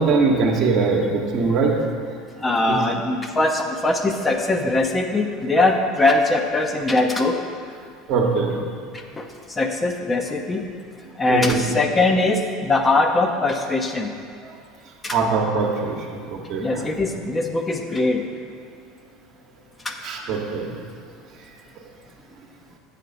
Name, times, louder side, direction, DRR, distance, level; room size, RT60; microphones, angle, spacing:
voice 1, 0.0-1.8 2.7-2.8 8.1-8.6 11.3-11.6 15.1-16.9 20.0-20.7, right 4 dB, 50° right, 1 dB, 1.0 m, -21 dB
voice 2, 2.3-7.4 8.9-10.7 11.2-14.1 15.0-15.2 16.6-18.2 19.8-19.9, left 2 dB, 20° left, 4 dB, 0.7 m, -21 dB
8.2 x 5.9 x 4.0 m, 2.2 s
figure-of-eight pair, 70°, 0 cm